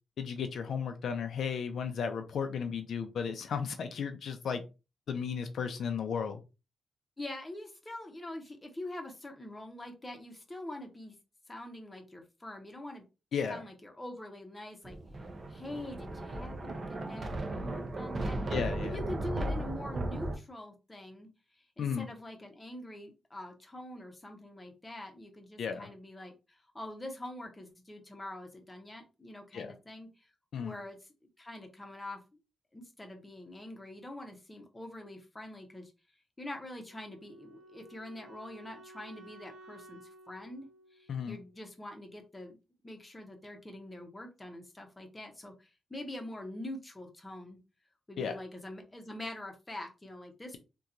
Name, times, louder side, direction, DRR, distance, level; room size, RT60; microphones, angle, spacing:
voice 1, 0.2-4.6 5.1-6.4 13.3-13.6 18.5-19.0 21.8-22.1 25.6-25.9 29.5-29.7 30.5-30.8 41.1-41.4 48.2-48.4, left 6 dB, 60° left, 0.4 m, -34 dB
voice 2, 7.2-11.2 11.5-13.0 13.5-15.0 15.5-18.5 18.8-21.3 21.6-30.3 30.6-31.0 31.4-32.2 32.7-35.9 36.4-40.0 40.3-42.6 42.8-47.6 48.1-50.6, left 1 dB, 15° left, 0.7 m, -45 dB
Thunder, 14.8-20.4, right 1 dB, 30° right, 0.5 m, -36 dB
Wind instrument woodwind instrument, 36.7-41.8, right 2 dB, 75° right, 0.6 m, -55 dB
2.9 x 2.2 x 3.7 m
wide cardioid pair, 165°, 0 cm